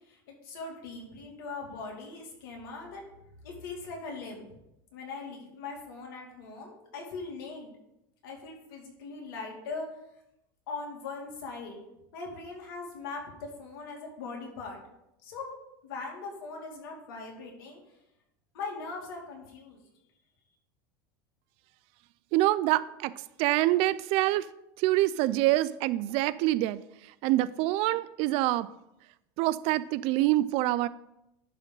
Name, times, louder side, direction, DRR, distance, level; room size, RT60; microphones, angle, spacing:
voice 1, 0.1-3.0 3.4-4.4 4.9-7.7 8.2-9.9 10.7-11.8 12.1-14.8 15.2-15.5 15.8-17.8 18.5-19.8, left 4 dB, 80° left, 0 dB, 2.5 m, -40 dB
voice 2, 22.3-23.1 23.4-24.5 24.8-26.8 27.2-28.7 29.4-30.9, right 16 dB, 60° right, 17 dB, 0.4 m, -25 dB
11.0 x 3.7 x 5.5 m, 0.85 s
supercardioid pair, 110°, 12 cm